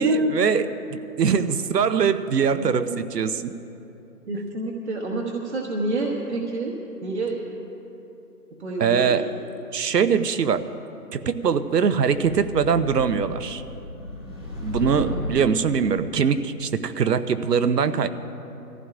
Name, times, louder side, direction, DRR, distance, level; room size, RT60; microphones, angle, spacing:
voice 1, 0.0-3.5 4.3-4.4 8.8-9.3 9.7-10.6 11.1-13.6 14.6-18.1, right 6 dB, 80° right, 12 dB, 0.9 m, -22 dB
voice 2, 2.6-3.0 4.3-6.7 7.0-7.4 8.6-9.2 15.1-15.5, right 2 dB, 45° right, -2 dB, 1.1 m, -27 dB
sound 1, 12.2-15.7, left 1 dB, 15° right, 1.0 m, -34 dB
24.0 x 15.0 x 2.5 m, 2.9 s
hypercardioid pair, 175°, 48 cm